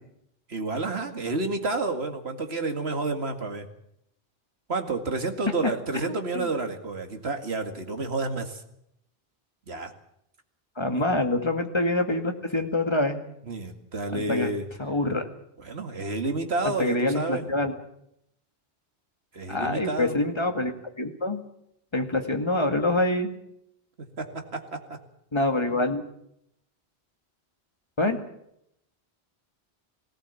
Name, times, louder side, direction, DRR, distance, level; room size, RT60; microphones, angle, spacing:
voice 1, 0.5-3.7 4.7-8.6 9.7-9.9 10.9-11.1 13.4-14.7 15.6-17.5 19.3-20.2 24.2-25.0, right 3 dB, 75° right, 6 dB, 2.3 m, -30 dB
voice 2, 6.0-6.5 10.8-13.2 14.1-14.5 14.8-15.2 16.8-17.7 19.5-21.4 21.9-23.4 25.3-26.0 28.0-28.2, left 2 dB, 25° left, 5 dB, 2.1 m, -26 dB
18.5 x 18.0 x 8.4 m, 0.76 s
omnidirectional pair, 1.1 m